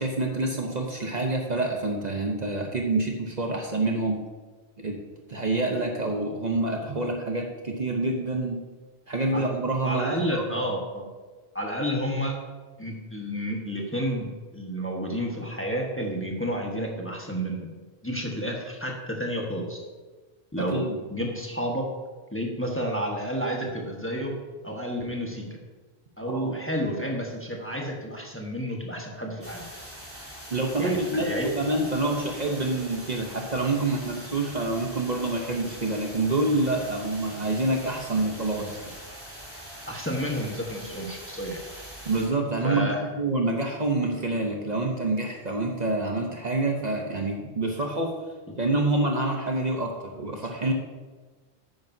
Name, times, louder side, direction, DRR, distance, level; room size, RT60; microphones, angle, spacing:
voice 1, 0.0-4.2 4.8-5.0 5.3-8.6 9.1-10.6 20.6-21.0 26.3-26.6 30.5-38.8 42.0-42.9 43.2-48.2 48.6-50.7, right 2 dB, 45° right, 1 dB, 1.0 m, -27 dB
voice 2, 9.8-11.1 11.5-12.3 12.8-17.7 18.0-19.8 20.5-20.8 21.1-21.8 22.3-24.3 24.6-25.5 26.2-29.6 30.8-31.5 39.9-41.6 42.6-43.0, equal, 10° left, -1 dB, 1.2 m, -30 dB
sound 1, 29.4-42.3, equal, 10° right, 3.1 m, -43 dB
11.5 x 9.0 x 2.7 m, 1.3 s
omnidirectional pair, 1.1 m